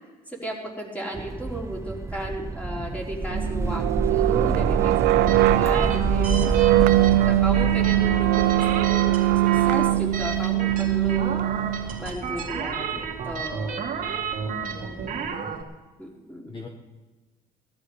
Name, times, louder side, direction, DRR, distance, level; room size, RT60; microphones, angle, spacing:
voice 1, 0.3-6.4 7.1-11.4 12.0-13.9 16.0-16.6, right 1 dB, 10° left, -2 dB, 4.0 m, -34 dB
sound 1, 1.1-15.3, right 3 dB, 15° right, 0.5 m, -31 dB
sound 2, 3.3-12.1, right 15 dB, 80° right, 0.5 m, -21 dB
sound 3, 5.3-15.6, right 6 dB, 55° right, 2.2 m, -33 dB
voice 2, 14.4-15.4 16.4-16.7, left 3 dB, 30° left, 2 dB, 1.6 m, -42 dB
17.5 x 13.0 x 5.0 m, 1.2 s
cardioid pair, 110°, 17 cm